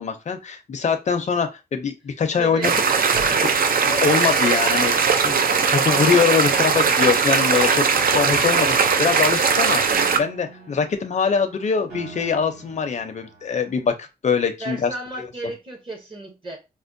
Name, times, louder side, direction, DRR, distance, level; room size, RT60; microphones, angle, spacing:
voice 1, 0.0-2.7 3.8-7.9 8.1-9.8 10.1-14.9 15.2-15.3, left 6 dB, 45° left, 0.5 m, -23 dB
voice 2, 2.4-2.8 3.1-3.5 14.6-16.6, right 2 dB, 30° right, 0.8 m, -33 dB
sound 1, 2.6-10.2, right 5 dB, 55° right, 0.4 m, -19 dB
Piano, 5.9-13.9, right 3 dB, 80° right, 2.0 m, -43 dB
4.3 x 2.1 x 2.5 m
wide cardioid pair, 110°, 17 cm